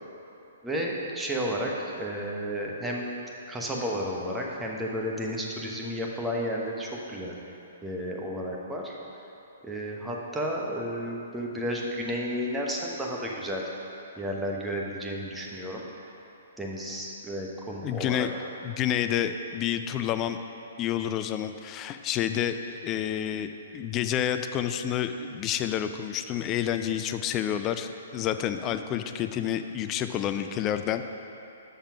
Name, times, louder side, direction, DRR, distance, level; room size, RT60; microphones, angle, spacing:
voice 1, 0.6-3.0 3.5-7.3 7.8-8.9 9.6-13.7 14.2-15.8 16.6-18.3, equal, 10° right, -2 dB, 1.0 m, -32 dB
voice 2, 17.8-18.3 18.6-20.4 20.8-31.0, left 10 dB, 25° left, 9 dB, 0.4 m, -29 dB
6.7 x 5.7 x 5.7 m, 2.9 s
hypercardioid pair, 135°, 0 cm